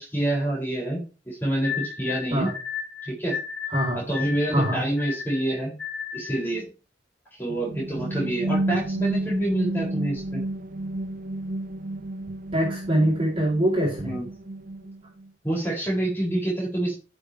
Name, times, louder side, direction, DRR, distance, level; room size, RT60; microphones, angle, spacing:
voice 1, 0.0-2.5 3.0-3.4 4.1-5.7 6.1-6.7 7.4-10.4 14.0-14.3 15.4-17.0, right 1 dB, 10° left, -5 dB, 7.2 m, -27 dB
sound 1, 1.6-6.5, left 7 dB, 85° left, 2.0 m, -34 dB
voice 2, 3.7-4.0 4.5-4.8 12.5-14.2, right 1 dB, 30° right, -3 dB, 4.5 m, -23 dB
sound 2, 7.5-15.3, right 1 dB, 45° right, 0.7 m, -31 dB
15.5 x 7.2 x 3.6 m, 0.32 s
head